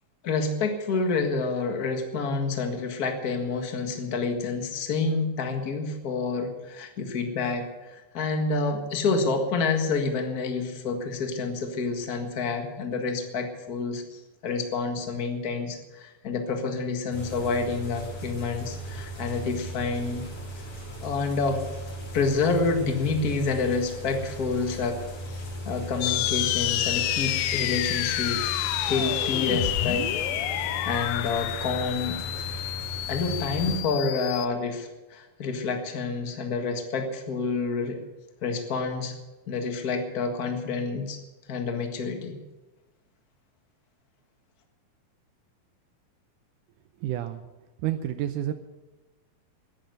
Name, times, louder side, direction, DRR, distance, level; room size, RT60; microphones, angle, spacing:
voice 1, 0.2-20.2 21.0-21.6 22.1-25.0 25.3-28.5 28.8-30.1 30.8-32.2 33.1-38.0 38.4-39.1 39.5-41.2 41.5-42.4, left 4 dB, 45° left, 4 dB, 1.2 m, -28 dB
sound 1, 17.1-33.8, right 1 dB, 65° left, 6.1 m, -37 dB
sound 2, 26.0-34.5, left 14 dB, 80° left, 2.3 m, -29 dB
voice 2, 47.0-47.4 47.8-48.5, right 12 dB, 80° right, 9 dB, 1.9 m, -29 dB
14.0 x 10.5 x 7.9 m, 1.1 s
omnidirectional pair, 4.3 m